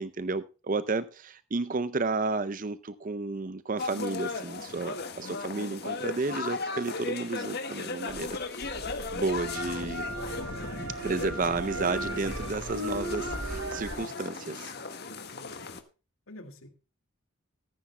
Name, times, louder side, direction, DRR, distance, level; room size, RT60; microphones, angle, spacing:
voice 1, 0.0-10.1 11.0-14.7, right 3 dB, 40° right, 0.5 m, -32 dB
sound 1, 3.8-15.8, left 3 dB, 50° left, 1.5 m, -37 dB
sound 2, 8.1-14.0, right 1 dB, 85° right, 3.3 m, -37 dB
voice 2, 15.0-15.7 16.3-16.7, left 1 dB, 75° left, 2.0 m, -49 dB
14.5 x 14.0 x 2.2 m
head